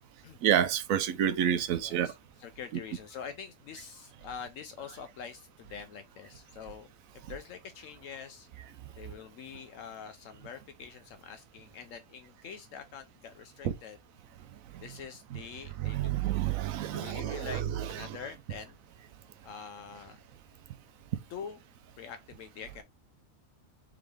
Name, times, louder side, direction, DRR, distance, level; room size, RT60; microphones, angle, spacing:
voice 1, 0.4-2.1 13.6-13.7 15.3-15.4 15.8-18.2, right 10 dB, 80° right, 1.0 m, -29 dB
voice 2, 1.8-6.9 7.1-8.5 9.0-14.0 14.8-16.2 16.9-17.6 17.9-18.8 19.4-20.2 21.3-21.6 22.0-22.8, left 7 dB, 75° left, 1.0 m, -45 dB
3.9 x 3.6 x 3.2 m
omnidirectional pair, 1.4 m